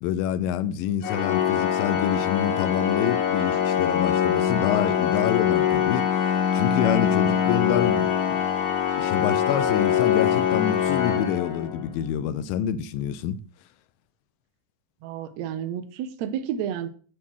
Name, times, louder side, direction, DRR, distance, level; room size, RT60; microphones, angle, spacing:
voice 1, 0.0-8.4 9.0-13.4, left 9 dB, 90° left, 2.3 m, -27 dB
Organ, 1.0-12.0, left 9 dB, 70° left, 2.5 m, -23 dB
voice 2, 15.0-16.9, right 9 dB, 80° right, 1.5 m, -31 dB
7.4 x 4.3 x 6.1 m
omnidirectional pair, 3.9 m